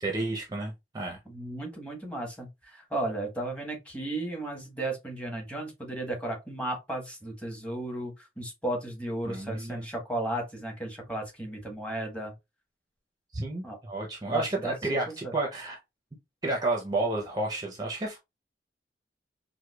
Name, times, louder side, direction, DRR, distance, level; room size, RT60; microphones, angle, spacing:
voice 1, 0.0-1.2 9.2-9.9 13.3-15.8 16.4-18.2, right 2 dB, 20° right, 0.6 m, -31 dB
voice 2, 1.3-12.3 13.6-13.8 14.2-14.7 15.1-15.3, right 1 dB, 5° left, 1.1 m, -34 dB
4.6 x 2.1 x 2.2 m
head